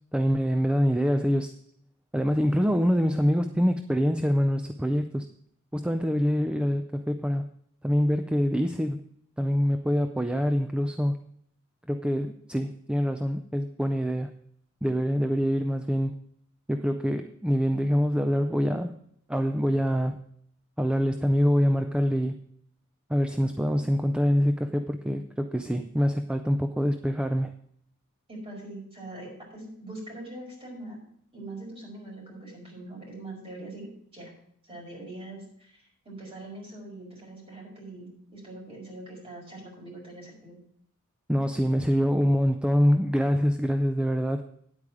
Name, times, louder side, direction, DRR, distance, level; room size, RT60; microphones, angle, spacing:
voice 1, 0.1-1.5 2.1-5.3 5.7-7.5 7.8-9.0 9.4-11.2 11.9-14.3 14.8-16.2 16.7-19.0 19.3-20.2 20.8-22.4 23.1-27.5 41.3-44.5, equal, 5° right, 8 dB, 0.4 m, -25 dB
voice 2, 28.3-31.0 31.3-34.3 34.6-40.6, right 2 dB, 25° right, -2 dB, 5.1 m, -42 dB
9.8 x 8.6 x 4.8 m, 0.68 s
head